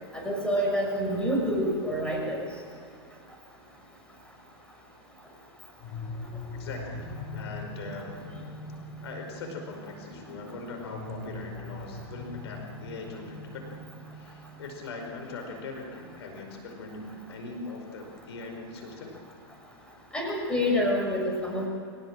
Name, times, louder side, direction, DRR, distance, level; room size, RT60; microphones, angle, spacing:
voice 1, 0.1-2.5 20.1-21.7, equal, 5° left, -1 dB, 6.7 m, -27 dB
sound 1, 5.8-18.6, left 2 dB, 45° left, 5.9 m, -43 dB
voice 2, 6.5-8.1 9.0-19.1, left 3 dB, 75° left, 3 dB, 5.2 m, -41 dB
23.0 x 19.0 x 7.6 m, 2.5 s
hypercardioid pair, 115°, 14 cm